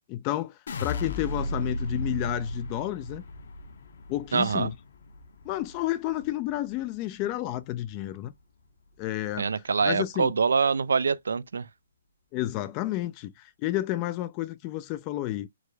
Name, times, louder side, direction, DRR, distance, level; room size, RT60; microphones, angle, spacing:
voice 1, 0.1-3.2 4.1-4.7 5.4-8.3 9.0-9.5 9.8-10.3 12.3-15.5, left 15 dB, 25° left, 0.3 m, -31 dB
sound 1, 0.7-6.8 7.2-7.8, left 1 dB, 60° left, 1.0 m, -35 dB
voice 2, 4.3-4.7 9.4-11.7, right 5 dB, 85° right, 0.4 m, -25 dB
4.7 x 2.1 x 4.8 m
hypercardioid pair, 155°, 0 cm